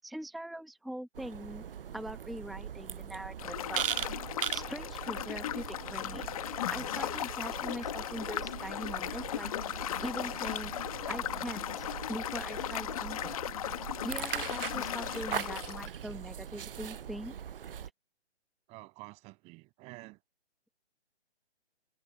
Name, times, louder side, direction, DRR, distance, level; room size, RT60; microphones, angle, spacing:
voice 1, 0.0-1.6 1.9-3.9 4.5-6.3 6.7-9.5 10.0-10.7 11.1-13.4 14.0-17.4, right 1 dB, ahead, 1.0 m, -42 dB
sound 1, 1.1-17.9, right 8 dB, 55° right, 0.7 m, -40 dB
sound 2, 3.4-15.9, left 12 dB, 30° left, 1.4 m, -37 dB
voice 2, 18.7-20.2, right 24 dB, 20° right, 7.3 m, -49 dB
hypercardioid pair, 155°, 33 cm